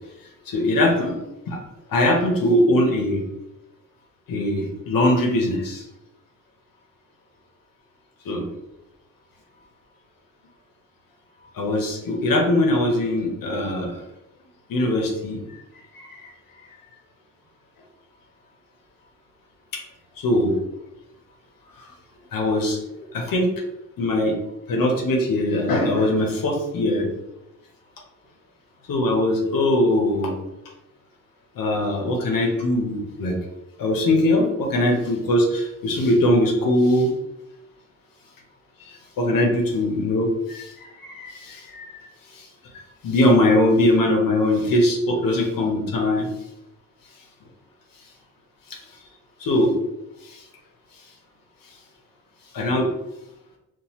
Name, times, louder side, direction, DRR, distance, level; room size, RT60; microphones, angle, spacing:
voice 1, 0.5-1.2 1.5-1.6 1.9-3.2 4.3-5.8 8.2-8.5 11.5-14.0 14.7-15.4 15.9-16.3 19.7-19.8 20.2-20.6 21.8-21.9 22.3-22.8 23.1-23.5 24.0-24.4 24.7-27.1 28.9-30.4 31.6-33.4 33.8-37.1 38.9-41.9 42.3-42.5 42.7-46.3 48.7-48.8 49.4-49.7 50.2-50.4 52.5-52.9, left 1 dB, 85° left, 1 dB, 0.9 m, -21 dB
5.5 x 2.5 x 3.0 m, 0.92 s
wide cardioid pair, 120°, 33 cm